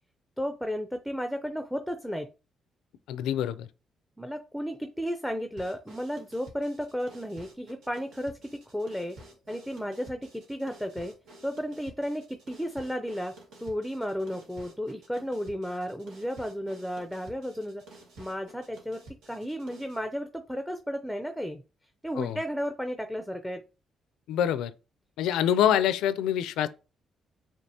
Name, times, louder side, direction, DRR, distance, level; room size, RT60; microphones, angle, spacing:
voice 1, 0.4-2.3 4.2-9.2 9.5-11.1 11.4-13.3 13.6-17.8 18.2-21.6 22.0-23.6, equal, ahead, 0.5 m, -33 dB
voice 2, 3.1-3.7 22.2-22.4 24.3-24.7 25.2-26.7, left 10 dB, 90° left, 0.4 m, -25 dB
sound 1, 5.6-20.0, right 1 dB, 80° right, 1.6 m, -52 dB
5.2 x 2.9 x 2.8 m
cardioid pair, 90°, 0 cm